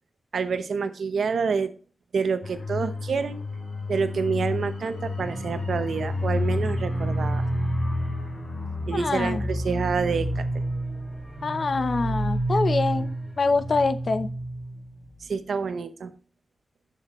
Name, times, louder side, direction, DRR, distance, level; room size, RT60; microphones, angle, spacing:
voice 1, 0.3-1.7 2.1-3.4 3.9-7.4 8.9-10.4 15.2-16.1, right 5 dB, 90° right, 10 dB, 0.9 m, -27 dB
sound 1, 2.4-14.8 15.1-15.3, left 3 dB, 80° left, 3.4 m, -32 dB
sound 2, 5.2-15.0, right 2 dB, 10° right, 2.2 m, -31 dB
voice 2, 8.9-9.4 11.4-13.1 13.4-14.3, left 3 dB, 55° left, 12 dB, 0.7 m, -25 dB
10.5 x 7.1 x 3.1 m, 0.38 s
wide cardioid pair, 100°, 0 cm